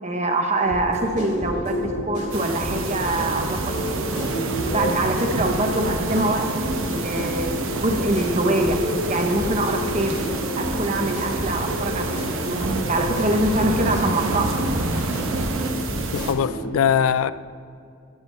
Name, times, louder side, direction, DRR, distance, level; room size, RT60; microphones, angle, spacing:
voice 1, 0.0-4.2 4.6-8.8 9.1-10.2 10.6-14.5, right 1 dB, 30° right, 4 dB, 0.8 m, -24 dB
sound 1, 0.7-16.7, equal, 50° left, 2.5 m, -30 dB
sound 2, 2.3-16.3, right 3 dB, 70° right, 1.1 m, -32 dB
sound 3, 3.1-15.7, right 2 dB, 90° right, 0.9 m, -31 dB
voice 2, 16.1-17.3, left 8 dB, 75° left, 15 dB, 0.3 m, -21 dB
13.0 x 12.5 x 3.4 m, 2.4 s
head